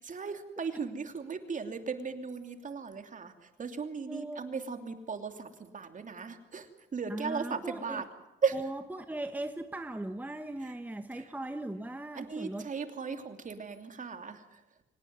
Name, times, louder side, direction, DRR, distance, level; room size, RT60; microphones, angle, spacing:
voice 1, 0.0-3.3 3.6-8.0 8.4-8.5 11.1-11.2 12.1-14.4, right 5 dB, 40° right, 7 dB, 2.9 m, -36 dB
voice 2, 4.1-4.5 7.1-8.0 8.5-12.7, right 1 dB, 10° right, 8 dB, 1.3 m, -39 dB
24.5 x 18.5 x 9.5 m, 0.94 s
cardioid pair, 90°, 20 cm